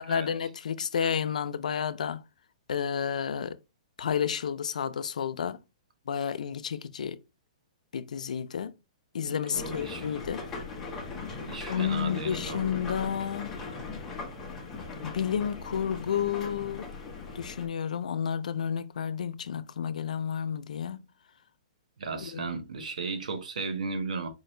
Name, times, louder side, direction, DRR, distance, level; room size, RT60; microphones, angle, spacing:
voice 1, 0.0-2.2 2.7-3.6 4.0-5.6 6.1-7.2 7.9-8.7 9.1-10.5 11.7-13.6 15.0-16.9 17.3-21.1 22.2-22.5, left 8 dB, 90° left, 0.4 m, -31 dB
voice 2, 9.3-10.1 11.5-12.7 22.0-24.3, right 3 dB, 85° right, 1.0 m, -35 dB
sound 1, 9.5-17.7, left 4 dB, 10° left, 0.7 m, -39 dB
4.7 x 2.5 x 3.1 m
hypercardioid pair, 170°, 4 cm